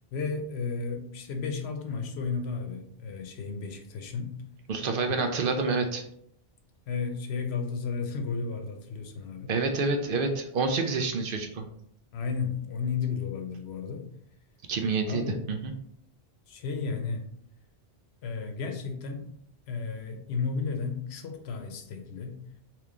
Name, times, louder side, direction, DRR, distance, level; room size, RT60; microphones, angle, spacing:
voice 1, 0.1-4.4 5.1-5.2 6.9-9.5 12.1-14.1 15.1-15.5 16.5-17.3 18.2-19.3 19.7-22.4, left 5 dB, 90° left, 5 dB, 0.9 m, -33 dB
voice 2, 4.7-6.0 9.5-11.6 14.7-15.7, right 4 dB, 65° right, 5 dB, 0.7 m, -28 dB
3.4 x 3.0 x 3.6 m, 0.69 s
omnidirectional pair, 1.0 m